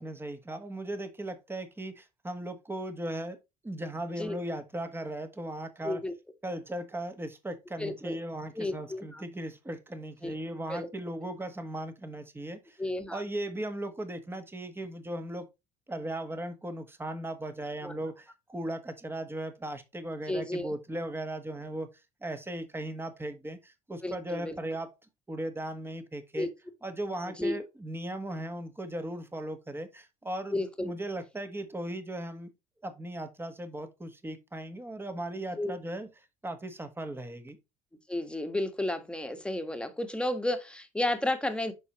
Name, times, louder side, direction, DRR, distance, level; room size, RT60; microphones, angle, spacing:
voice 1, 0.0-3.4 3.6-6.0 6.4-12.8 13.1-15.4 15.9-21.9 22.2-24.9 25.3-26.5 26.8-32.5 32.8-36.1 36.4-37.6, right 1 dB, 10° right, 1.4 m, -37 dB
voice 2, 7.8-8.2 8.5-9.2 10.2-10.4 10.7-10.9 12.8-13.2 17.8-17.9 20.3-20.7 24.0-24.6 26.3-26.5 27.3-27.6 30.5-30.9 35.6-35.7 38.1-41.7, left 1 dB, 5° left, 1.5 m, -32 dB
10.5 x 4.2 x 3.1 m
supercardioid pair, 80°, 19 cm